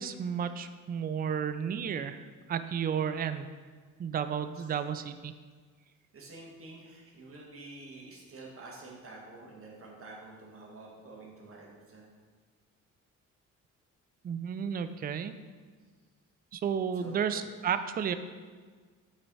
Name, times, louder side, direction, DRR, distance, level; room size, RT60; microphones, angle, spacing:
voice 1, 0.0-3.5 4.0-5.3 14.2-15.3 16.5-18.1, right 7 dB, 30° right, 10 dB, 0.4 m, -32 dB
voice 2, 6.1-12.1 17.0-17.4, right 2 dB, 45° right, -2 dB, 1.8 m, -48 dB
8.8 x 4.4 x 4.1 m, 1.5 s
cardioid pair, 90°, 30 cm